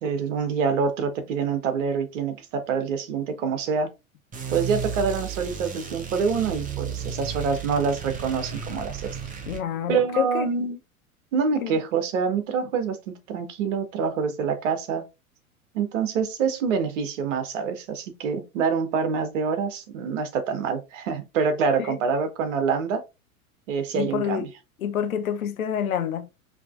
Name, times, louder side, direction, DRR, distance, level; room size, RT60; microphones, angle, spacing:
voice 1, 0.0-3.9 4.5-9.1 9.9-10.8 11.3-15.0 15.7-23.0 23.7-24.5, right 5 dB, 60° right, 1.1 m, -26 dB
sound 1, 4.3-9.6, right 7 dB, 20° right, 0.9 m, -33 dB
voice 2, 9.5-10.5 11.6-11.8 21.8-21.9 23.9-24.5 24.8-26.3, left 9 dB, 75° left, 0.7 m, -27 dB
5.0 x 2.9 x 2.4 m
figure-of-eight pair, 95°, 42 cm